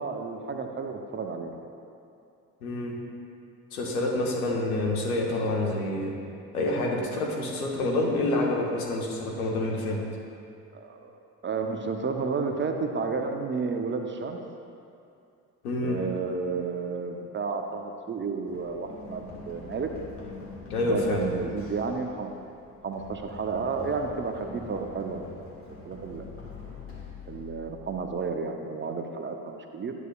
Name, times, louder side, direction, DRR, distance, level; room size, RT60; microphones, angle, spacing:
voice 1, 0.0-1.7 10.7-14.4 15.8-19.9 20.8-22.3 22.8-25.5 25.8-26.2 27.3-29.9, right 4 dB, 25° right, 4 dB, 0.6 m, -32 dB
voice 2, 2.6-3.0 3.7-6.1 6.5-10.0 15.6-16.0 20.7-21.3, left 2 dB, 80° left, -1 dB, 1.1 m, -27 dB
Run, 18.5-28.2, left 3 dB, 30° left, 1.7 m, -44 dB
11.0 x 8.0 x 2.3 m, 2.6 s
figure-of-eight pair, 45°, 44 cm